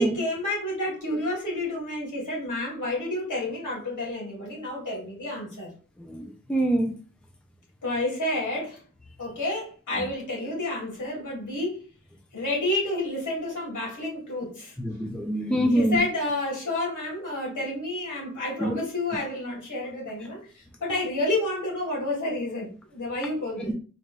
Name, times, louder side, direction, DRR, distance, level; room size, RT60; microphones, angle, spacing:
voice 1, 0.0-5.7 7.8-8.8 9.2-11.8 12.3-14.8 15.7-23.7, left 1 dB, 85° left, 2.0 m, -30 dB
voice 2, 6.0-6.9 14.8-16.0 18.6-18.7, right 1 dB, 5° left, 0.6 m, -25 dB
4.2 x 2.5 x 3.3 m
wide cardioid pair, 65°, 30 cm